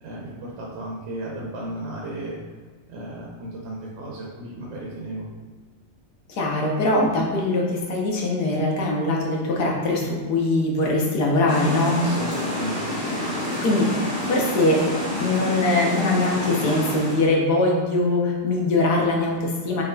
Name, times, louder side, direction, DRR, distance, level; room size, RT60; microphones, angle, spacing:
voice 1, 0.0-2.4 2.9-5.3 12.0-12.8, right 1 dB, 85° right, -3 dB, 1.5 m, -34 dB
voice 2, 6.3-12.0 13.6-19.8, left 2 dB, 65° left, -1 dB, 1.3 m, -22 dB
sound 1, 11.5-17.3, left 1 dB, 20° left, 1.1 m, -28 dB
5.6 x 4.0 x 2.3 m, 1.5 s
omnidirectional pair, 2.0 m